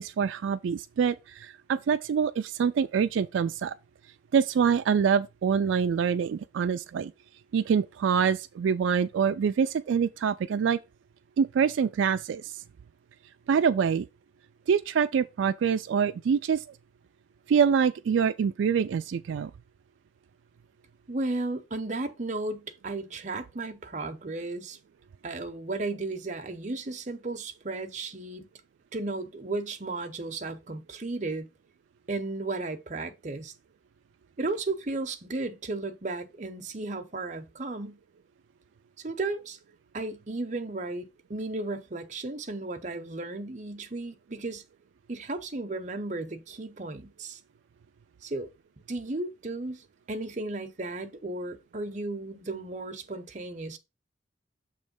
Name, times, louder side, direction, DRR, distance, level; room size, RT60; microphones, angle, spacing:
voice 1, 0.0-3.8 4.3-7.1 7.5-10.8 11.4-12.6 13.5-14.1 14.7-16.6 17.5-19.5, right 7 dB, 80° right, 0.3 m, -25 dB
voice 2, 21.1-24.8 25.2-28.5 28.9-31.5 32.1-33.5 34.4-38.0 39.0-39.6 39.9-44.6 45.1-47.4 48.2-48.5 48.9-53.8, right 2 dB, 40° right, 0.8 m, -34 dB
7.0 x 3.2 x 5.2 m
head